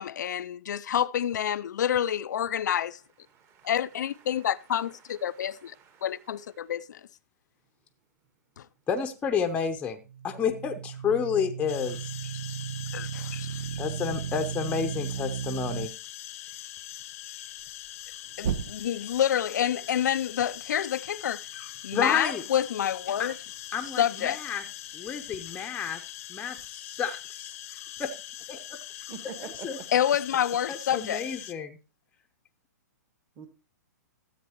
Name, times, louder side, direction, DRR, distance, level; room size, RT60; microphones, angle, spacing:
voice 1, 0.0-3.0 3.6-5.8 6.0-7.0 8.6-8.7 12.9-13.6 18.4-21.5 21.8-23.3 24.0-24.4 29.9-31.2, left 10 dB, 75° left, 0.5 m, -28 dB
voice 2, 3.3-6.3 6.6-6.7 25.5-25.6 29.1-29.7 33.4-33.5, right 6 dB, 25° right, 1.7 m, -48 dB
voice 3, 8.9-12.0 12.3-12.6 13.8-15.9 21.9-22.4 23.2-23.3 23.7-24.6 24.9-26.0 26.3-27.6 28.0-28.1 28.5-28.8 29.6-29.8 30.7-31.8, left 7 dB, 15° left, 0.8 m, -30 dB
sound 1, 10.1-15.9 18.4-19.2, right 8 dB, 55° right, 0.7 m, -35 dB
sound 2, 11.7-31.5, left 14 dB, 50° left, 0.8 m, -42 dB
13.5 x 8.1 x 3.0 m
hypercardioid pair, 140°, 10 cm